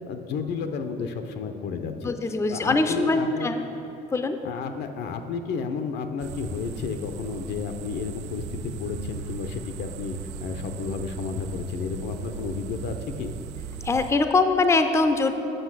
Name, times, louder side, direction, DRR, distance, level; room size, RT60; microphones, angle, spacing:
voice 1, 0.1-2.1 2.5-3.5 4.4-13.3, left 5 dB, 75° left, 7 dB, 0.7 m, -32 dB
voice 2, 2.0-3.6 4.1-4.4 13.8-15.4, left 3 dB, 15° left, 7 dB, 0.5 m, -22 dB
sound 1, 6.2-14.1, right 6 dB, 90° right, 0.4 m, -37 dB
7.9 x 5.9 x 6.1 m, 2.9 s
cardioid pair, 105°, 18 cm